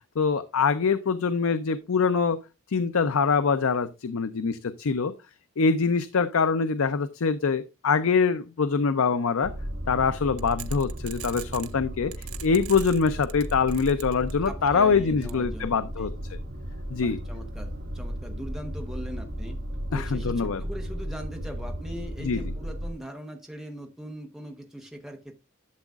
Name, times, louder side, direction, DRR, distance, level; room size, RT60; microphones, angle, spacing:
voice 1, 0.2-2.4 2.7-5.1 5.6-9.5 9.9-16.1 16.9-17.2 19.9-20.6 22.2-22.4, left 5 dB, 80° left, 0.5 m, -24 dB
sound 1, 9.4-22.9, equal, 65° right, 1.8 m, -35 dB
sound 2, 10.4-11.7 12.1-14.7 15.2-15.3, right 12 dB, 80° right, 0.7 m, -41 dB
voice 2, 14.4-16.1 16.9-19.6 19.9-25.4, equal, ahead, 0.9 m, -41 dB
11.5 x 7.2 x 2.4 m
head